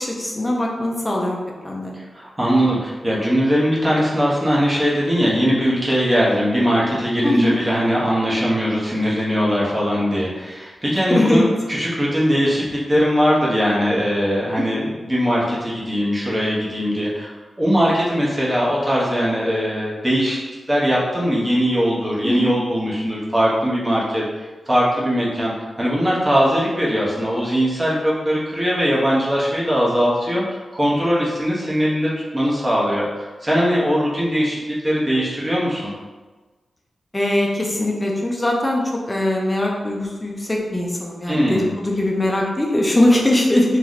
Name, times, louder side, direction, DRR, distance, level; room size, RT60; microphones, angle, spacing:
voice 1, 0.0-1.4 1.6-1.9 7.2-7.6 11.1-11.4 14.6-14.8 22.2-22.5 37.1-43.8, left 1 dB, 15° left, -1 dB, 0.6 m, -21 dB
voice 2, 2.1-20.4 20.7-34.6 34.8-35.9 41.3-41.7, equal, 15° right, -6 dB, 1.1 m, -20 dB
3.1 x 2.9 x 3.9 m, 1.3 s
wide cardioid pair, 150°, 0 cm